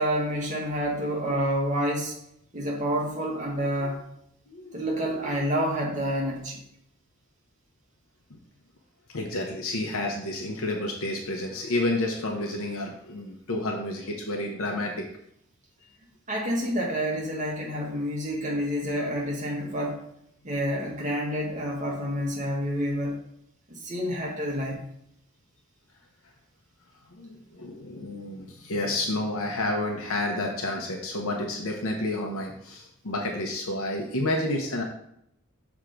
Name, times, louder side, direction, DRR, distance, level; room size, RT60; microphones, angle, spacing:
voice 1, 0.0-2.1 2.5-4.0 4.7-6.6 16.3-20.0 20.4-23.2 23.7-24.8, equal, 35° right, -2 dB, 1.6 m, -28 dB
voice 2, 4.5-4.8 5.3-5.4 8.3-8.4 9.1-15.1 27.1-34.8, left 1 dB, 80° left, 1 dB, 0.9 m, -30 dB
6.1 x 3.6 x 5.1 m, 0.75 s
head